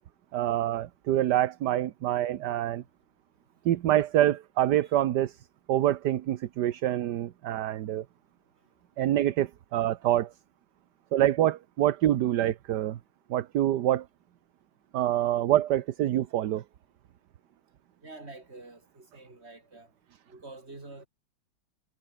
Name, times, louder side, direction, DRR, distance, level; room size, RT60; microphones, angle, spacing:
voice 1, 0.3-2.8 3.6-5.4 5.7-8.0 9.0-10.3 11.1-13.0 13.3-14.1 14.9-16.6, right 12 dB, 60° right, 1.3 m, -26 dB
voice 2, 18.0-19.9 20.3-21.1, right 2 dB, 30° right, 4.1 m, -47 dB
omnidirectional pair, 2.3 m